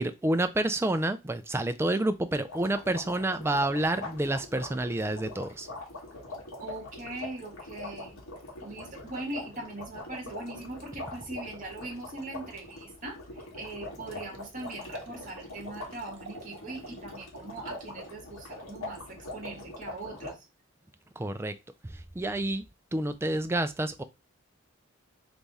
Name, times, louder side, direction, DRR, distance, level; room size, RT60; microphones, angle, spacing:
voice 1, 0.0-5.7 21.2-21.5 21.9-22.6 22.9-24.0, right 1 dB, 10° right, 0.3 m, -29 dB
sound 1, 2.5-20.3, left 2 dB, 80° left, 1.8 m, -42 dB
voice 2, 6.6-8.2 8.6-20.5, right 2 dB, 35° right, 1.4 m, -41 dB
Liquid, 13.1-13.2 13.7-13.8 14.0-17.2 17.6-17.7, right 4 dB, 55° right, 0.8 m, -52 dB
3.5 x 3.4 x 4.0 m
head